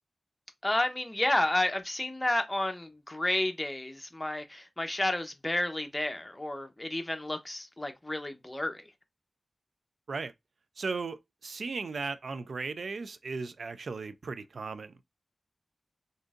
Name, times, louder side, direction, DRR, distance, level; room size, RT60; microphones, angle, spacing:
voice 1, 0.6-8.8, left 1 dB, 20° left, 0.7 m, -31 dB
voice 2, 10.8-15.0, right 4 dB, 85° right, 0.3 m, -36 dB
3.7 x 2.6 x 2.4 m
wide cardioid pair, 65°, 0 cm